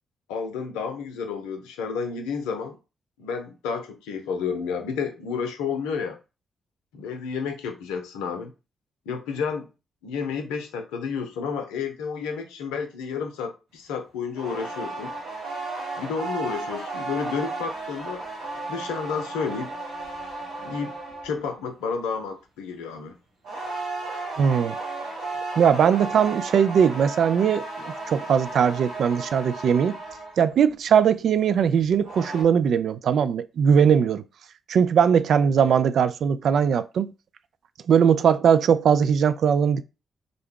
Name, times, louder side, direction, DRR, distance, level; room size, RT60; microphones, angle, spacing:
voice 1, 0.3-2.8 3.2-6.2 6.9-8.5 9.1-9.7 10.0-15.1 16.0-18.2 18.7-19.7 20.6-21.0 21.2-23.2, left 6 dB, 85° left, 0.6 m, -31 dB
sound 1, 14.3-21.5 23.4-30.5 31.8-32.4, right 3 dB, 85° right, 1.8 m, -34 dB
voice 2, 24.4-24.8 25.6-27.7 28.1-30.0 30.4-34.2 34.7-37.1 37.9-39.8, right 7 dB, 65° right, 0.3 m, -20 dB
3.7 x 2.2 x 3.6 m
hypercardioid pair, 40°, 0 cm